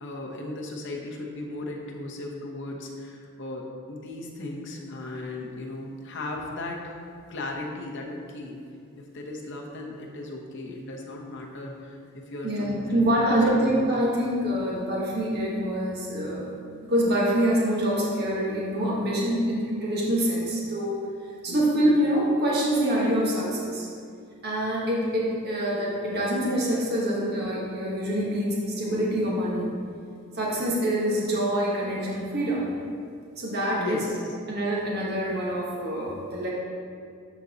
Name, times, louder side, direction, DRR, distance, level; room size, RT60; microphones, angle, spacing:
voice 1, 0.0-7.0 7.3-8.6 9.0-14.1 21.5-21.6 33.8-34.4, left 2 dB, 55° left, 0 dB, 0.8 m, -36 dB
voice 2, 12.4-16.5 16.8-21.0 21.4-23.9 24.4-29.7 30.3-32.6 33.4-34.0 34.5-36.5, equal, 45° right, -5 dB, 1.2 m, -25 dB
11.5 x 4.0 x 2.8 m, 2.3 s
head